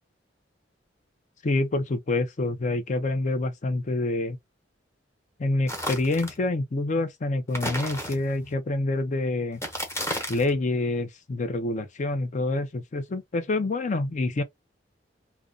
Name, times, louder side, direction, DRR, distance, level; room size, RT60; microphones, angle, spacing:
voice 1, 1.4-4.4 5.4-9.6 10.3-14.4, left 2 dB, 45° left, 0.5 m, -27 dB
sound 1, 5.7-6.4 7.5-8.5 9.5-10.5, equal, 15° left, 1.0 m, -33 dB
2.5 x 2.2 x 2.4 m
head